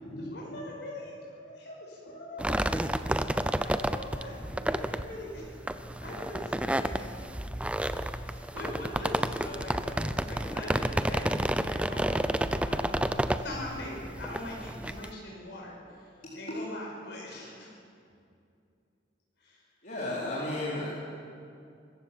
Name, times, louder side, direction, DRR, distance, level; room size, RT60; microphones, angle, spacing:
voice 1, 0.2-2.5 3.6-5.6 6.0-7.1 8.2-13.1 13.4-16.1 16.3-17.8 19.4-19.6, left 1 dB, 70° left, -3 dB, 5.4 m, -42 dB
sound 1, 2.4-15.1, right 1 dB, 5° right, 0.5 m, -30 dB
voice 2, 19.8-20.9, left 1 dB, 50° left, -8 dB, 4.0 m, -33 dB
25.0 x 15.0 x 7.3 m, 2.5 s
head